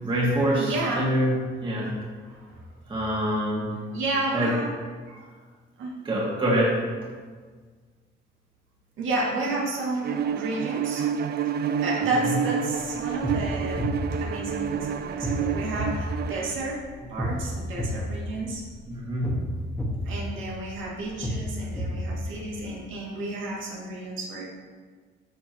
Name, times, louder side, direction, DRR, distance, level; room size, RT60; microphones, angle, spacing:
voice 1, 0.0-1.3 1.6-1.9 2.9-3.7 4.3-4.5 6.1-6.8 11.0-11.1 18.9-19.3, equal, 25° right, -5 dB, 2.1 m, -25 dB
voice 2, 0.6-1.1 2.4-2.6 3.9-4.7 5.1-5.3 5.8-6.0 9.0-11.0 11.8-13.9 14.2-16.8 17.1-18.6 20.0-24.5, right 2 dB, 80° right, -4 dB, 2.4 m, -31 dB
Bowed string instrument, 10.0-16.6, right 7 dB, 55° right, 0.4 m, -29 dB
sound 1, 12.8-22.7, equal, ahead, 1.8 m, -32 dB
12.0 x 6.9 x 3.0 m, 1.5 s
cardioid pair, 145°, 20 cm